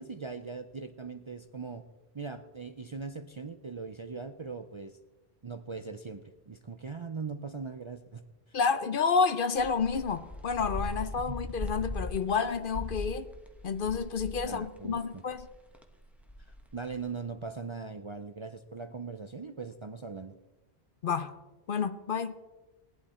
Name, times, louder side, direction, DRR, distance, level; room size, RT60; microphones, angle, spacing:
voice 1, 0.0-1.8 2.1-5.0 5.4-8.2 8.5-8.6 11.3-11.4 14.4-15.2 16.4-20.3, right 4 dB, 40° right, 0.5 m, -40 dB
voice 2, 8.5-13.3 13.6-15.5 21.0-21.3 21.7-22.3, left 5 dB, 60° left, 0.8 m, -29 dB
sound 1, 9.6-15.0 15.3-17.0, left 1 dB, ahead, 1.1 m, -40 dB
18.5 x 11.5 x 4.3 m
omnidirectional pair, 1.1 m